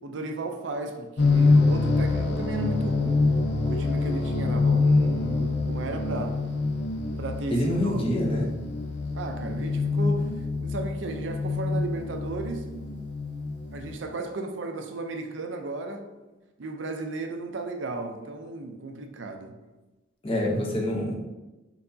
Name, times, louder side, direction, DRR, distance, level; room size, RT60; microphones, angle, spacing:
voice 1, 0.0-3.3 3.7-6.4 7.2-8.2 9.1-10.3 10.6-12.7 13.7-16.1 16.6-19.6, right 2 dB, 70° right, 4 dB, 0.5 m, -34 dB
sound 1, 1.2-14.0, left 3 dB, 65° left, 0.5 m, -25 dB
voice 2, 7.5-8.5 20.2-21.1, left 1 dB, 30° left, -1 dB, 0.7 m, -26 dB
4.4 x 4.0 x 2.7 m, 1.1 s
head